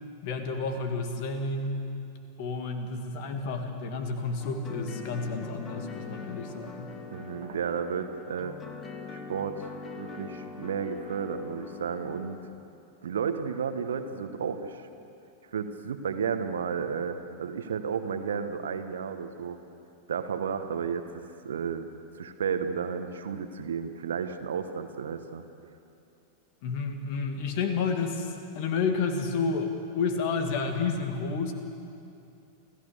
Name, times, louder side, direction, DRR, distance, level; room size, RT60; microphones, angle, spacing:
voice 1, 0.2-1.8 2.4-6.9 26.6-31.5, left 4 dB, 45° left, 6 dB, 2.3 m, -30 dB
sound 1, 4.4-12.4, left 4 dB, 20° left, 1.7 m, -43 dB
voice 2, 7.1-8.6 9.1-12.4 13.0-14.9 15.5-19.6 20.1-21.1 21.4-21.9 22.1-25.7, right 6 dB, 65° right, 9 dB, 1.3 m, -32 dB
28.5 x 15.5 x 6.8 m, 2.6 s
figure-of-eight pair, 90°, 0 cm